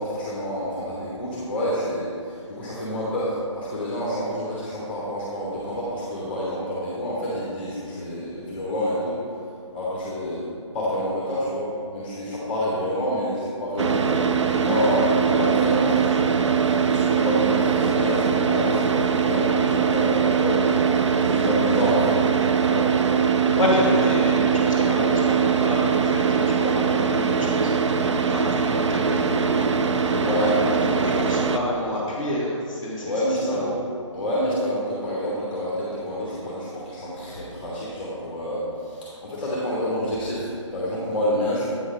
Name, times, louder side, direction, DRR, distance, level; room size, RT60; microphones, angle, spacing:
voice 1, 0.0-9.2 9.7-10.5 10.7-22.2 22.6-22.9 30.1-31.1 33.0-33.8 34.1-41.7, equal, 20° left, -6 dB, 1.1 m, -28 dB
Car / Idling, 13.8-31.6, right 6 dB, 65° right, 0.4 m, -21 dB
voice 2, 23.6-30.1 30.4-33.1 33.5-33.7, left 1 dB, ahead, -17 dB, 0.5 m, -29 dB
8.4 x 4.0 x 5.1 m, 2.5 s
hypercardioid pair, 175°, 16 cm